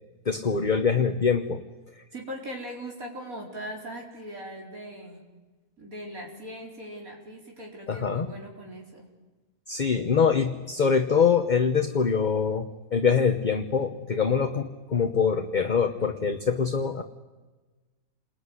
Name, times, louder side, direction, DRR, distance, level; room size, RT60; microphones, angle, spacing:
voice 1, 0.3-1.6 7.9-8.3 9.7-17.0, left 6 dB, 35° left, 7 dB, 1.1 m, -24 dB
voice 2, 2.1-5.2 5.8-9.0, equal, 65° right, -1 dB, 4.9 m, -40 dB
29.0 x 20.5 x 9.7 m, 1.3 s
omnidirectional pair, 1.6 m